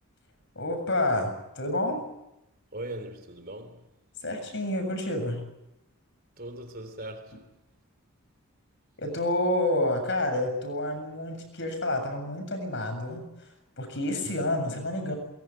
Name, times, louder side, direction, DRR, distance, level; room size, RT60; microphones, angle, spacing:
voice 1, 0.6-2.0 4.2-5.4 9.0-13.2 13.8-15.2, left 1 dB, 55° left, 7.7 m, -29 dB
voice 2, 2.7-3.8 6.4-7.4, right 1 dB, 40° right, 3.5 m, -39 dB
23.0 x 22.5 x 9.2 m
head